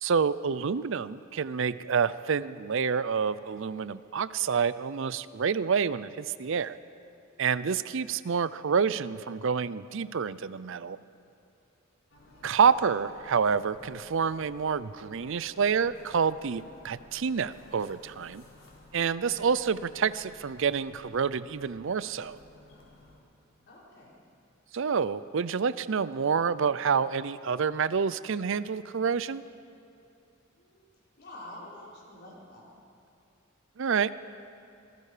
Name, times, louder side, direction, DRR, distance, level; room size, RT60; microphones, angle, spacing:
voice 1, 0.0-6.8 7.4-11.0 12.4-18.4 18.9-22.4 24.7-29.4 33.8-34.1, right 6 dB, 65° right, 16 dB, 0.5 m, -28 dB
sound 1, 12.1-23.2, left 2 dB, 70° left, 4.0 m, -55 dB
voice 2, 23.7-24.2 30.6-30.9 31.2-32.7, left 1 dB, 55° left, -5 dB, 5.5 m, -48 dB
26.0 x 20.0 x 5.0 m, 2.8 s
head